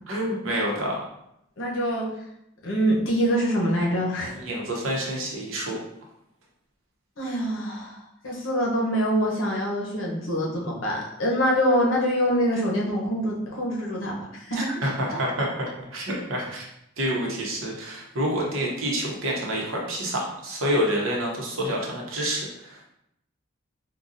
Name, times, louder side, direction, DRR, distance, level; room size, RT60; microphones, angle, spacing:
voice 1, 0.1-1.0 4.3-5.8 14.5-16.6 17.0-22.8, equal, 75° right, -2 dB, 0.8 m, -28 dB
voice 2, 1.6-2.1 2.6-4.4 7.2-14.6, equal, 70° left, -3 dB, 0.9 m, -25 dB
3.8 x 2.3 x 2.6 m, 0.78 s
head